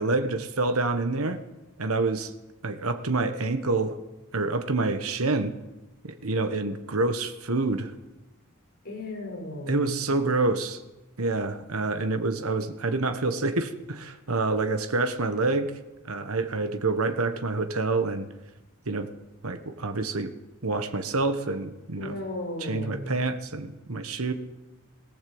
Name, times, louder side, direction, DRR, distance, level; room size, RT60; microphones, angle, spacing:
voice 1, 0.0-1.4 1.8-2.3 2.6-4.0 4.3-5.5 6.0-7.9 9.7-10.8 11.2-15.7 16.0-18.3 18.9-19.1 19.4-20.3 20.6-22.2 22.6-24.3, right 3 dB, 80° right, 8 dB, 1.4 m, -27 dB
voice 2, 8.8-9.9 22.0-23.1, left 1 dB, 45° left, -1 dB, 6.9 m, -35 dB
19.0 x 17.5 x 7.9 m, 1.1 s
head